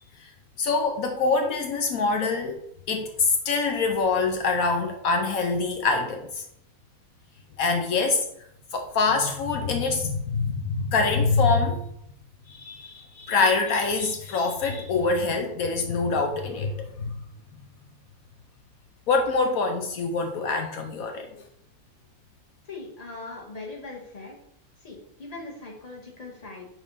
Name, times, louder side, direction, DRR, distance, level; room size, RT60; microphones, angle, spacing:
voice 1, 0.6-2.6 2.9-6.4 7.6-8.2 8.7-11.8 12.5-17.2 19.1-21.3, left 4 dB, 75° left, 4 dB, 1.2 m, -25 dB
voice 2, 22.7-24.3 24.8-26.7, left 3 dB, 25° left, -1 dB, 1.6 m, -40 dB
6.2 x 4.1 x 5.4 m, 0.73 s
omnidirectional pair, 1.5 m